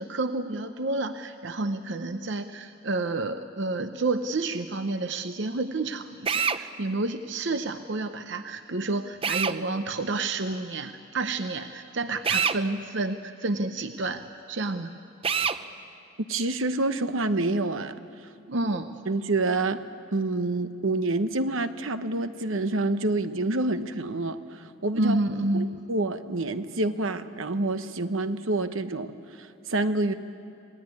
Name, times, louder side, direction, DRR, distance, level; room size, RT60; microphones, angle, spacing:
voice 1, 0.0-14.2 14.5-14.9 18.5-19.0 25.0-25.7, right 2 dB, 60° right, 8 dB, 0.8 m, -30 dB
Drill, 6.3-6.6 9.2-9.6 12.2-12.6 15.2-15.6, right 6 dB, 25° right, 0.6 m, -25 dB
voice 2, 16.3-17.9 19.1-19.8 20.1-25.2 25.5-29.1 29.4-30.1, right 2 dB, 80° right, 10 dB, 1.1 m, -27 dB
27.5 x 18.5 x 9.7 m, 2.5 s
head